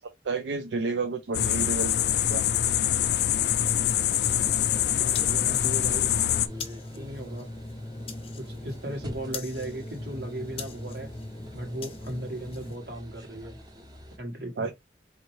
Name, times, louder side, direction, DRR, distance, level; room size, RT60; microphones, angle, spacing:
voice 1, 0.2-1.9 2.3-2.4 14.6-14.7, right 3 dB, 85° right, 0.4 m, -30 dB
sound 1, 1.3-6.5, left 11 dB, 65° left, 0.4 m, -24 dB
sound 2, 3.3-12.8, left 2 dB, 30° left, 0.7 m, -40 dB
sound 3, 4.1-14.2, equal, 20° right, 0.7 m, -48 dB
voice 2, 4.9-6.1 7.0-7.5 8.4-11.1 11.5-13.6 14.2-14.7, right 1 dB, 65° right, 1.4 m, -37 dB
4.3 x 2.8 x 3.1 m
head